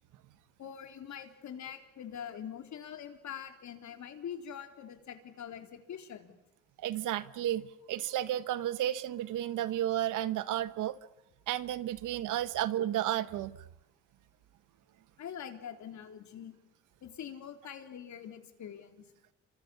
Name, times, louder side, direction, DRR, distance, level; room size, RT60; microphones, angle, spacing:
voice 1, 0.6-6.3 15.2-16.6 17.0-19.1, left 8 dB, 65° left, 3.8 m, -44 dB
voice 2, 6.8-10.9 11.5-13.6, right 12 dB, 85° right, 1.4 m, -32 dB
29.0 x 25.5 x 7.1 m
cardioid pair, 90°, 30 cm